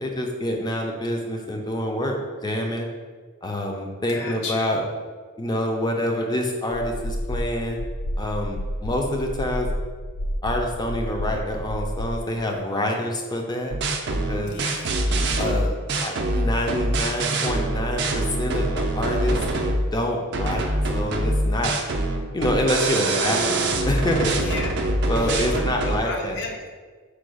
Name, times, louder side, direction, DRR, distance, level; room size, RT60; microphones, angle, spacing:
voice 1, 0.0-2.9 3.4-4.8 5.4-7.8 8.2-9.7 10.4-13.7 14.3-14.5 15.4-19.4 19.9-21.8 22.3-24.3 25.1-26.4, left 1 dB, 20° left, 2 dB, 0.5 m, -26 dB
voice 2, 4.1-4.7 14.4-15.0 24.4-24.7 25.2-26.7, left 3 dB, 55° left, 1 dB, 0.7 m, -34 dB
sound 1, 6.7-12.2, equal, 85° left, 0.4 m, -30 dB
sound 2, 13.7-19.9 20.3-26.0, right 2 dB, 50° right, 0.4 m, -24 dB
4.6 x 2.3 x 4.8 m, 1.5 s
head